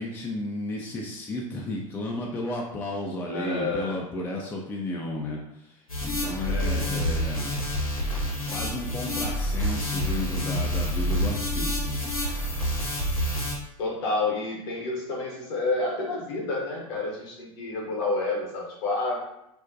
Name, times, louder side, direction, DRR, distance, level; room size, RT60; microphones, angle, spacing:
voice 1, 0.0-7.5 8.2-12.0, left 1 dB, 15° left, -2 dB, 0.3 m, -33 dB
voice 2, 3.3-4.1 6.4-7.3 13.8-19.2, left 2 dB, 50° left, -1 dB, 0.8 m, -30 dB
sound 1, 5.9-13.5, equal, 80° left, 0.8 m, -28 dB
2.5 x 2.1 x 2.5 m, 0.85 s
figure-of-eight pair, 80°, 18 cm